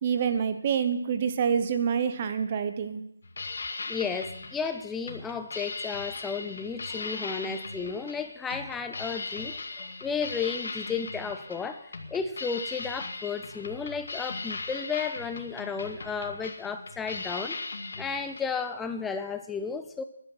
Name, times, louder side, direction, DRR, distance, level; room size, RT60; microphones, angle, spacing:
voice 1, 0.0-3.0, right 7 dB, 25° right, 9 dB, 0.9 m, -27 dB
sound 1, 3.2-18.5, left 3 dB, 55° left, 2.1 m, -38 dB
voice 2, 3.9-17.6 18.0-20.0, left 5 dB, 5° left, 8 dB, 0.4 m, -33 dB
14.0 x 11.5 x 5.6 m, 0.77 s
figure-of-eight pair, 170°, 0 cm